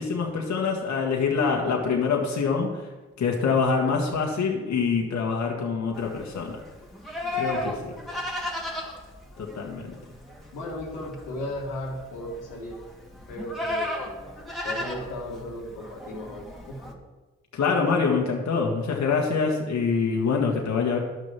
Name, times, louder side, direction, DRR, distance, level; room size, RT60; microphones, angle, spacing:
voice 1, 0.0-2.8 3.2-6.6 7.3-7.9 9.4-9.9 17.5-21.0, left 5 dB, 65° left, 0 dB, 1.7 m, -25 dB
Livestock farm animals working animals, 5.9-16.9, left 1 dB, ahead, 2.7 m, -35 dB
voice 2, 7.6-8.2 10.5-12.8 13.3-14.3 14.6-17.0, left 1 dB, 85° left, -2 dB, 2.1 m, -36 dB
11.0 x 6.4 x 6.1 m, 1.2 s
hypercardioid pair, 40°, 31 cm